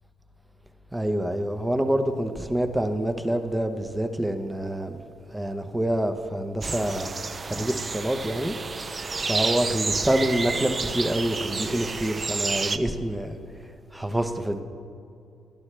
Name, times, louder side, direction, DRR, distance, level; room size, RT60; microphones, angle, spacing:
voice 1, 0.9-5.0 5.3-7.2 7.4-8.5 9.2-14.6, right 1 dB, 10° right, 7 dB, 0.9 m, -27 dB
sound 1, 6.6-12.8, right 4 dB, 35° right, 0.5 m, -30 dB
19.5 x 11.5 x 3.4 m, 2.6 s
cardioid pair, 90°, 0 cm